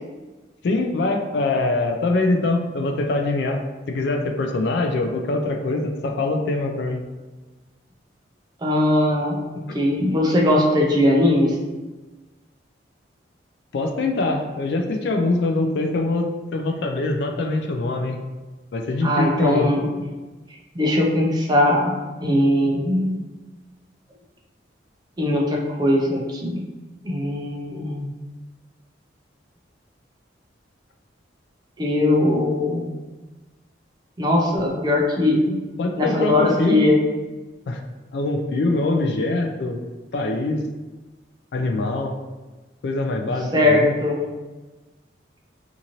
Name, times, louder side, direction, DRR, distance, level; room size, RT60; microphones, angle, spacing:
voice 1, 0.6-3.6 3.9-7.0 9.7-9.8 13.7-18.2 18.7-19.7 35.8-36.9 37.7-37.8 38.1-39.8 40.1-40.6 41.5-42.1 42.8-43.9, left 2 dB, 60° left, 4 dB, 0.3 m, -23 dB
voice 2, 8.6-9.4 9.7-11.5 19.0-19.8 20.8-21.9 22.2-23.1 25.2-26.5 27.1-28.1 31.8-32.9 34.2-35.6 36.0-37.0 43.5-44.2, left 1 dB, 20° right, -1 dB, 0.4 m, -20 dB
2.6 x 2.5 x 2.9 m, 1.2 s
head